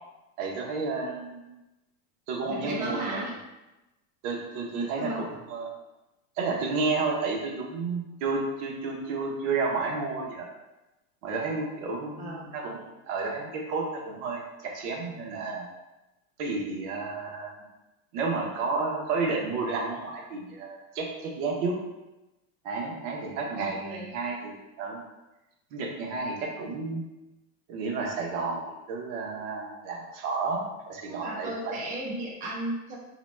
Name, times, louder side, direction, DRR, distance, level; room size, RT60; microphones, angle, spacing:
voice 1, 0.4-1.5 2.3-3.2 4.2-5.2 5.5-5.7 6.4-10.5 11.2-15.7 16.4-17.5 18.1-21.8 22.6-25.0 25.7-27.0 27.7-31.8, right 4 dB, 50° right, -1 dB, 0.8 m, -31 dB
voice 2, 2.5-3.3 4.7-5.3 12.2-12.5 23.5-24.0 31.1-33.0, right 1 dB, 20° right, -3 dB, 0.4 m, -35 dB
2.8 x 2.1 x 3.2 m, 1.0 s
supercardioid pair, 140°, 45 cm